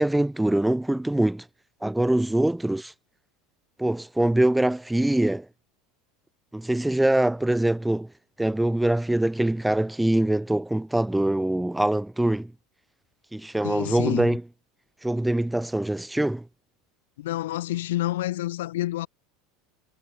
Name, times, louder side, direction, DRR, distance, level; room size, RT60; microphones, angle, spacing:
voice 1, 0.0-1.4 1.8-2.9 3.8-5.5 6.5-8.1 8.4-12.5 13.3-14.4 15.0-16.4, right 1 dB, 5° right, 0.6 m, -23 dB
voice 2, 13.6-14.3 17.2-19.1, left 15 dB, 90° left, 2.2 m, -28 dB
supercardioid pair, 125°, 0 cm